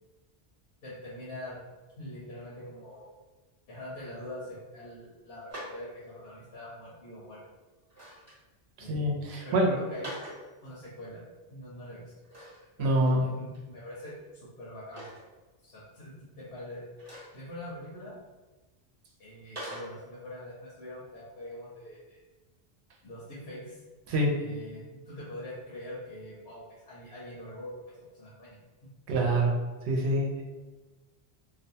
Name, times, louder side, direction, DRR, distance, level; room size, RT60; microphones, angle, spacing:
voice 1, 0.8-1.6 2.0-3.1 3.7-7.5 8.8-10.2 10.6-11.2 11.5-12.0 12.8-15.1 15.6-16.9 17.3-18.2 19.2-22.2 23.0-23.8 24.3-27.7 28.1-28.9, left 1 dB, 80° left, -7 dB, 0.9 m, -43 dB
sound 1, 5.5-5.8 7.8-8.4 9.9-10.4 12.2-12.7 13.1-13.2 13.5-13.6 14.9-15.2 17.0-17.4 19.6-19.9, equal, 15° right, 0.7 m, -42 dB
voice 2, 8.8-9.8 12.8-13.2 24.1-24.3 29.1-29.5 29.9-30.4, right 1 dB, 80° right, 0 dB, 0.8 m, -25 dB
2.5 x 2.1 x 2.6 m, 1.2 s
omnidirectional pair, 1.1 m